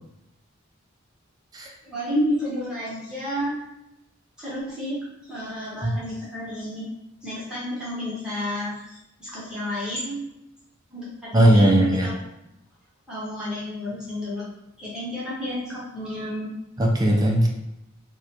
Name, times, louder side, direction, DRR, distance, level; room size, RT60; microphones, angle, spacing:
voice 1, 1.8-3.6 4.4-6.9 7.2-8.8 9.2-10.2 10.9-12.1 13.1-14.4 14.8-16.5, equal, 5° right, -10 dB, 0.8 m, -30 dB
voice 2, 11.3-12.1 16.8-17.5, right 1 dB, 20° right, -1 dB, 0.3 m, -18 dB
2.4 x 2.1 x 2.8 m, 0.87 s
head